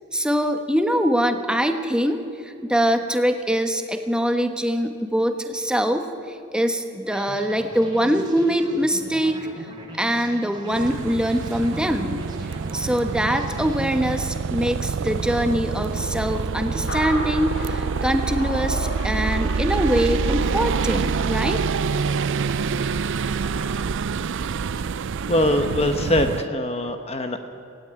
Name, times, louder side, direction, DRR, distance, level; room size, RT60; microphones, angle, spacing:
voice 1, 0.1-9.5 10.0-21.6, equal, 5° right, 6 dB, 1.2 m, -23 dB
sound 1, 7.1-14.7, right 1 dB, 20° right, 3.2 m, -40 dB
sound 2, 10.7-26.5, right 5 dB, 55° right, 0.4 m, -26 dB
sound 3, 16.9-23.8, left 1 dB, 55° left, 2.6 m, -37 dB
voice 2, 25.3-27.5, left 1 dB, 30° left, 7 dB, 1.0 m, -22 dB
18.0 x 17.0 x 8.9 m, 2.5 s
head